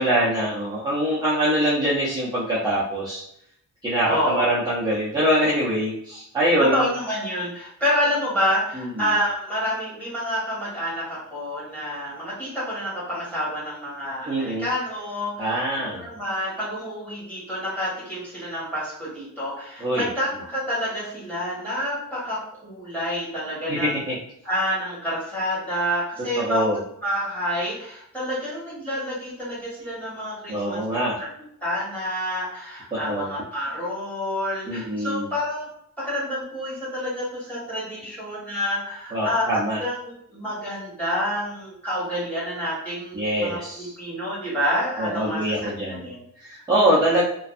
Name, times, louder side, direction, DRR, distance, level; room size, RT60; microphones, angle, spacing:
voice 1, 0.0-3.2 3.8-6.9 8.7-9.1 14.2-14.7 15.4-16.1 19.8-20.1 23.7-24.2 26.4-26.8 30.5-31.2 32.9-33.3 34.7-35.3 39.1-39.8 43.1-43.9 45.0-46.1 46.4-47.2, right 1 dB, 15° right, -8 dB, 0.5 m, -23 dB
voice 2, 4.0-4.5 6.6-24.0 24.4-26.7 27.0-30.8 31.2-31.3 31.6-35.7 36.0-39.5 39.8-46.2, equal, 5° left, -9 dB, 1.3 m, -28 dB
2.5 x 2.2 x 2.4 m, 0.73 s
wide cardioid pair, 180°, 31 cm